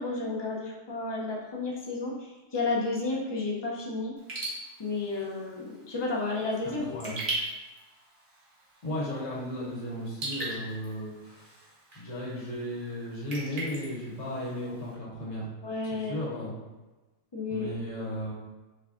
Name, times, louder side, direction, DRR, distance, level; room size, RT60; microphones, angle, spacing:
voice 1, 0.0-4.1 4.8-7.1 15.6-16.2 17.3-17.7, left 3 dB, 45° left, -3 dB, 0.3 m, -32 dB
Raindrop / Drip, 4.2-14.9, right 2 dB, 60° right, 1.4 m, -41 dB
voice 2, 6.6-7.2 8.8-11.5 11.9-15.5 15.8-16.5 17.5-18.3, equal, 70° left, -5 dB, 1.5 m, -35 dB
4.7 x 3.3 x 2.4 m, 1.2 s
omnidirectional pair, 1.4 m